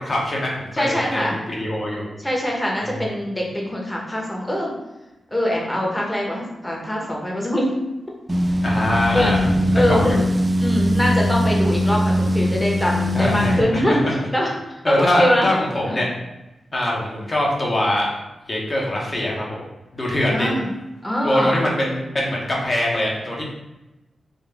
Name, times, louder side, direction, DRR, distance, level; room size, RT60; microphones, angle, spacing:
voice 1, 0.0-2.1 2.8-3.0 8.6-9.5 9.7-10.2 13.1-14.1 14.8-16.1 16.7-18.1 18.5-19.6 19.9-20.5 21.2-23.4, left 1 dB, 40° left, -3 dB, 1.1 m, -23 dB
voice 2, 0.7-1.4 2.2-4.7 5.3-7.7 9.1-9.4 9.7-10.2 10.6-14.0 14.3-14.5 14.8-15.5 15.9-16.0 20.3-20.7 21.0-21.6, equal, 10° left, -2 dB, 1.0 m, -23 dB
sound 1, 8.3-13.6, equal, 25° right, 0.4 m, -20 dB
4.0 x 2.4 x 3.4 m, 1.0 s
cardioid pair, 65°, 0 cm